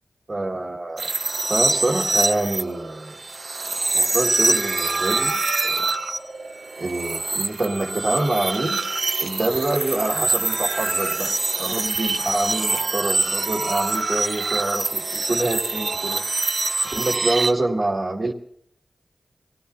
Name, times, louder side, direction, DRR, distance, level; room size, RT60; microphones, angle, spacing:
voice 1, 0.3-1.1 1.5-3.2 3.9-5.9 6.8-8.8 9.2-16.2 16.8-18.3, right 2 dB, 45° right, -4 dB, 2.2 m, -26 dB
sound 1, 1.0-17.5, right 3 dB, 65° right, 1.2 m, -24 dB
26.0 x 16.5 x 2.8 m, 0.68 s
cardioid pair, 55°, 0 cm